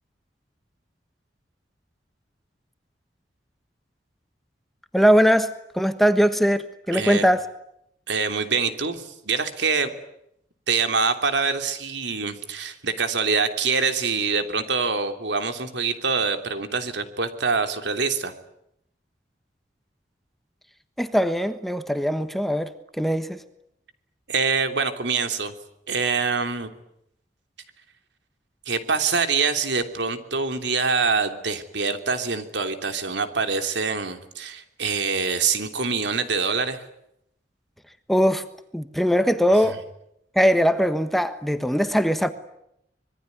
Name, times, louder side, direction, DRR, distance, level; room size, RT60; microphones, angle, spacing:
voice 1, 4.9-7.5 21.0-23.4 38.1-38.4 38.7-39.8 40.3-42.3, equal, ahead, 1.3 m, -21 dB
voice 2, 6.9-7.3 8.1-9.9 10.7-18.3 24.3-25.5 25.9-26.7 28.7-36.8, right 4 dB, 85° right, 3.1 m, -25 dB
26.0 x 22.0 x 9.5 m
head